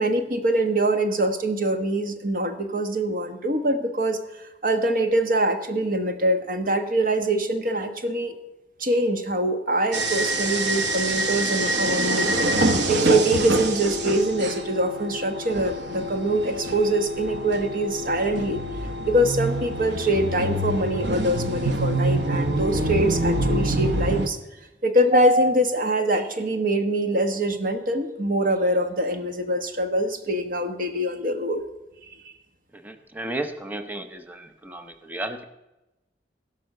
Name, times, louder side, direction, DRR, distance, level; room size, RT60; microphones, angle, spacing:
voice 1, 0.0-8.3 8.8-12.4 12.9-18.6 19.0-24.4 24.8-31.6 32.2-32.3, right 1 dB, 50° right, 7 dB, 1.2 m, -24 dB
sound 1, 9.9-24.3, right 1 dB, 75° right, 1.0 m, -25 dB
voice 2, 32.7-35.4, right 2 dB, 10° right, 8 dB, 0.7 m, -34 dB
16.5 x 5.6 x 6.5 m, 0.99 s
head